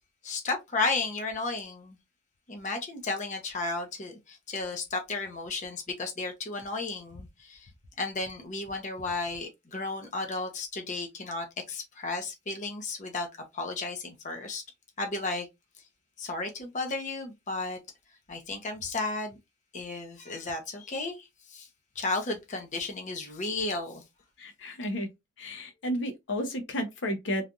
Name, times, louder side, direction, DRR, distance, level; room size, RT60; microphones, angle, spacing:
voice 1, 0.2-2.0 2.5-7.7 8.0-13.3 13.5-14.6 15.0-15.5 16.2-17.8 18.3-19.4 19.7-21.7 22.0-24.0, left 3 dB, 40° left, 0.7 m, -33 dB
voice 2, 24.4-25.1 25.4-27.4, equal, 80° left, 0.8 m, -32 dB
3.3 x 2.3 x 2.5 m
head